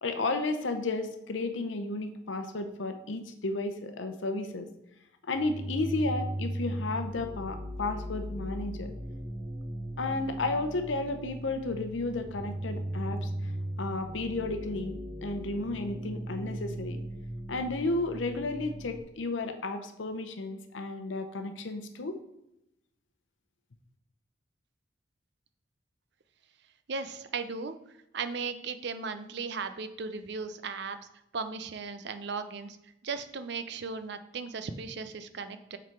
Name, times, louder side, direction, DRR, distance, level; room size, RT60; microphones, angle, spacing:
voice 1, 0.0-4.7 5.3-8.9 10.0-13.5 13.8-14.9 15.2-17.0 17.5-22.1, left 2 dB, 85° left, 8 dB, 0.7 m, -33 dB
sound 1, 5.3-19.0, right 1 dB, 40° right, 0.9 m, -38 dB
voice 2, 26.9-27.7 28.1-31.0 31.3-32.8 33.0-35.8, right 4 dB, 65° right, 10 dB, 0.6 m, -36 dB
7.5 x 3.9 x 4.6 m, 0.84 s
head